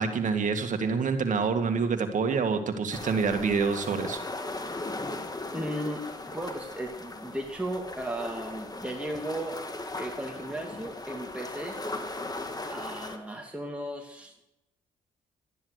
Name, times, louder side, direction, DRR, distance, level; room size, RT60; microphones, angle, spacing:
voice 1, 0.0-4.2, right 5 dB, 55° right, 7 dB, 2.1 m, -27 dB
sound 1, 2.9-13.2, left 2 dB, 25° left, 1.8 m, -38 dB
voice 2, 5.5-9.6 9.9-11.8 12.7-14.4, right 1 dB, 10° right, 0 dB, 2.5 m, -35 dB
12.5 x 10.5 x 6.6 m, 0.85 s
supercardioid pair, 50°, 15 cm